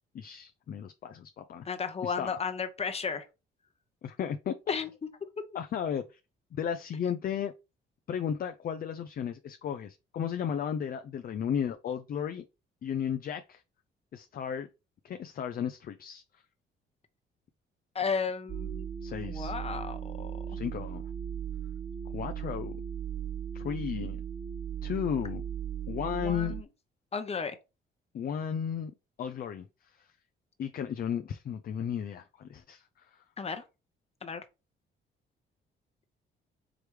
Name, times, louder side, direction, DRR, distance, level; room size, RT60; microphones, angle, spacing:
voice 1, 0.1-1.7 2.0-2.3 4.0-4.5 5.5-6.2 6.5-7.5 8.1-12.4 12.8-13.6 14.1-14.7 15.0-16.2 19.0-19.5 20.5-21.0 22.1-22.8 23.5-24.2 24.8-25.5 25.9-26.5 28.1-28.9 29.2-30.1 30.6-33.2, left 8 dB, 50° left, 0.5 m, -34 dB
voice 2, 1.6-3.3 4.7-4.9 17.9-18.9 19.3-20.6 26.1-26.6 27.1-27.6 33.4-33.6 34.2-34.4, left 5 dB, 30° left, 0.9 m, -34 dB
sound 1, 18.5-26.6, right 9 dB, 25° right, 0.3 m, -37 dB
4.9 x 3.0 x 3.3 m
cardioid pair, 90°, 20 cm